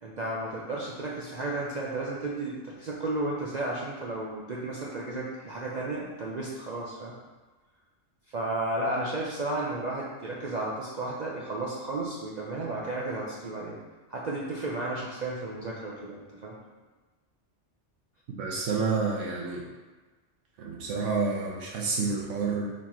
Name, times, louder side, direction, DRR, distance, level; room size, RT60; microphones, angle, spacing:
voice 1, 0.0-7.1 8.3-13.8 14.1-16.6, right 2 dB, 55° right, -4 dB, 0.5 m, -33 dB
voice 2, 18.3-19.7 20.6-22.7, right 4 dB, 75° right, -2 dB, 1.0 m, -29 dB
4.2 x 3.0 x 4.2 m, 1.3 s
omnidirectional pair, 1.3 m